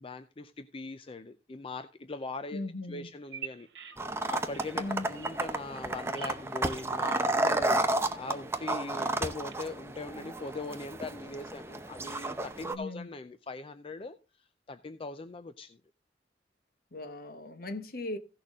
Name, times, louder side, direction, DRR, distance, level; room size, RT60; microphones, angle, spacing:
voice 1, 0.0-2.6 2.9-4.0 4.3-7.9 8.2-15.8, left 3 dB, 30° left, 0.5 m, -41 dB
voice 2, 2.5-3.1 4.7-5.1 12.7-13.1 16.9-18.2, left 2 dB, 55° left, 1.1 m, -38 dB
Bird vocalization bird call bird song, 3.2-9.5, right 8 dB, 80° right, 1.4 m, -50 dB
sound 1, 4.0-12.7, right 2 dB, 15° right, 0.7 m, -32 dB
16.0 x 6.5 x 3.6 m
head